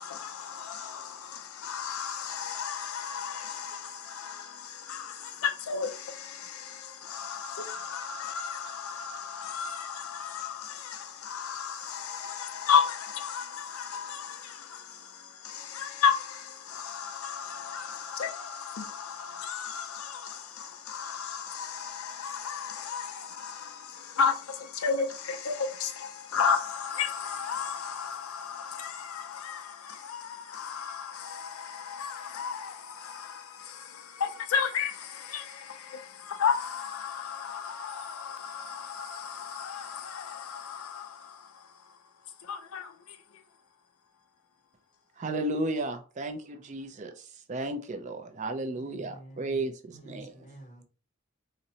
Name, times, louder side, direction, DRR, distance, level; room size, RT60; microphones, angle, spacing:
voice 1, 0.0-43.4, left 6 dB, 85° left, 0.4 m, -34 dB
voice 2, 45.2-50.6, right 2 dB, 35° right, 0.3 m, -34 dB
voice 3, 48.7-50.8, right 1 dB, 35° left, 0.6 m, -50 dB
4.0 x 2.0 x 2.7 m
head